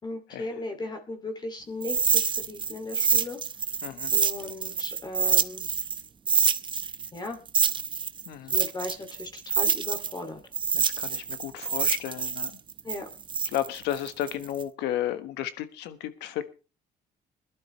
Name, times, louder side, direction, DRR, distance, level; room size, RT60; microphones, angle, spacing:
voice 1, 0.0-3.4 4.1-5.7 7.1-7.4 8.5-10.4 12.8-13.1, left 2 dB, 25° left, 5 dB, 2.6 m, -37 dB
sound 1, 1.8-6.0 6.3-10.2 10.5-14.6, right 6 dB, 30° right, 0.7 m, -26 dB
voice 2, 3.8-4.1 8.3-8.5 10.7-12.5 13.5-16.4, left 12 dB, 90° left, 11 dB, 1.4 m, -33 dB
21.0 x 12.0 x 3.2 m, 0.33 s
cardioid pair, 110°, 17 cm